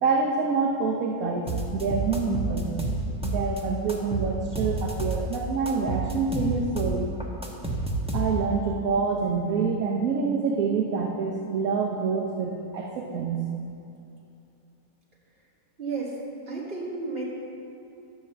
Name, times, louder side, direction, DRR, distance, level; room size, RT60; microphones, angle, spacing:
voice 1, 0.0-2.7 3.2-7.1 8.1-13.5, right 5 dB, 65° right, 0 dB, 1.2 m, -26 dB
sound 1, 1.5-3.6 3.9-5.4 5.7-8.6, right 2 dB, 5° right, 0.7 m, -29 dB
voice 2, 15.8-16.2 16.5-17.3, right 4 dB, 40° right, -4 dB, 2.2 m, -32 dB
11.5 x 6.1 x 6.8 m, 2.7 s
omnidirectional pair, 1.7 m